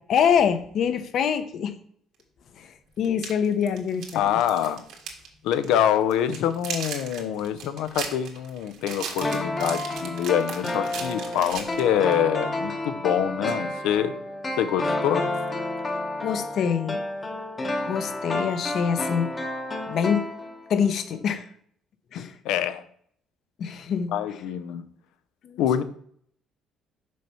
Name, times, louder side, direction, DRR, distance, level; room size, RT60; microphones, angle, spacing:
voice 1, 0.1-1.7 2.6-2.7 3.0-4.3 16.2-17.0 17.9-19.3 19.9-20.3 20.7-21.5 22.1-22.3 23.6-24.1 25.4-25.6, left 7 dB, 50° left, 0.7 m, -25 dB
sound 1, 2.2-2.3 3.0-5.3 5.5-5.7 6.1-12.2, right 6 dB, 75° right, 1.6 m, -37 dB
voice 2, 4.1-4.8 5.4-14.1 14.6-15.3 22.2-22.8 24.1-24.8 25.6-25.8, left 10 dB, 90° left, 0.6 m, -25 dB
sound 2, 9.2-20.9 21.1-21.2, left 2 dB, 20° left, 0.9 m, -30 dB
6.3 x 4.4 x 5.5 m
cardioid pair, 145°, 0 cm